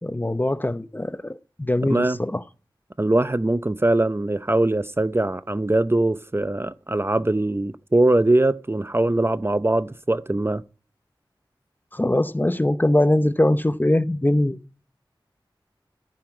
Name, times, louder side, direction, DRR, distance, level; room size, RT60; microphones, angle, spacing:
voice 1, 0.0-2.4 11.9-14.6, left 1 dB, 20° left, 0.8 m, -22 dB
voice 2, 1.9-2.2 3.0-10.6, right 2 dB, 30° right, 0.7 m, -21 dB
15.0 x 5.7 x 8.8 m
wide cardioid pair, 40°, 9 cm